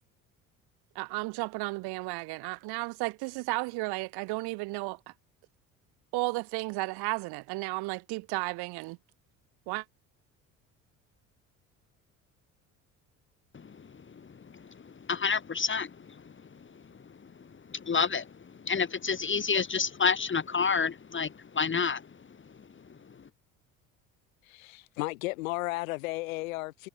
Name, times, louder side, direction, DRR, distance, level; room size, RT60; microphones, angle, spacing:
voice 1, 1.0-5.1 6.1-9.0 9.7-9.8, right 24 dB, 70° right, 7.5 m, -33 dB
voice 2, 13.5-16.3 16.7-16.8 17.2-22.1 22.6-23.0, left 5 dB, 30° left, 2.0 m, -30 dB
voice 3, 24.5-26.9, left 21 dB, 80° left, 7.0 m, -34 dB
hypercardioid pair, 60°, 40 cm